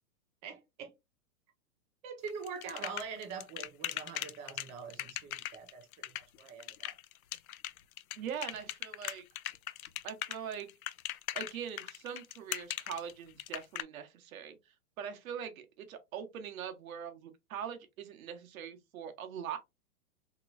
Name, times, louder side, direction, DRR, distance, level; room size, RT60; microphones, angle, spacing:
voice 1, 0.4-0.9 2.0-6.9, right 5 dB, 15° right, 0.4 m, -44 dB
sound 1, 2.3-13.8, left 13 dB, 70° left, 0.5 m, -39 dB
voice 2, 8.2-9.2 10.0-10.7 11.3-14.6 15.0-19.6, right 8 dB, 65° right, 1.0 m, -42 dB
3.0 x 2.9 x 2.5 m
hypercardioid pair, 130°, 44 cm